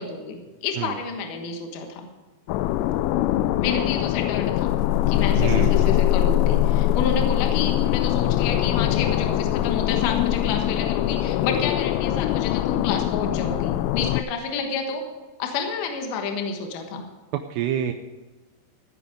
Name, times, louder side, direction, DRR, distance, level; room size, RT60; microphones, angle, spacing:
voice 1, 0.0-2.1 3.6-4.7 5.1-15.0 15.4-17.0, left 5 dB, 70° left, 4 dB, 3.1 m, -30 dB
sound 1, 2.5-14.2, left 13 dB, 85° left, 2.7 m, -22 dB
voice 2, 5.4-5.9 17.3-17.9, right 10 dB, 80° right, 6 dB, 2.7 m, -27 dB
15.5 x 9.8 x 5.0 m, 1.3 s
omnidirectional pair, 4.9 m